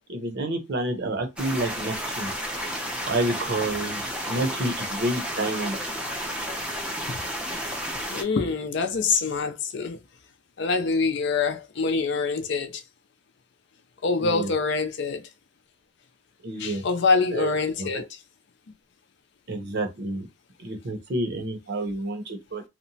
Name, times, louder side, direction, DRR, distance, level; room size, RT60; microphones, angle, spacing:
voice 1, 0.1-2.3 3.1-5.8 14.2-14.5 16.4-16.8 17.3-18.0 19.5-20.3 20.6-22.6, right 1 dB, 50° right, 0.7 m, -29 dB
sound 1, 1.4-8.2, equal, 5° right, 0.4 m, -32 dB
voice 2, 8.1-10.0 10.6-12.8 14.0-15.2 16.6-18.1, left 4 dB, 55° left, 0.4 m, -25 dB
2.9 x 2.1 x 2.6 m
head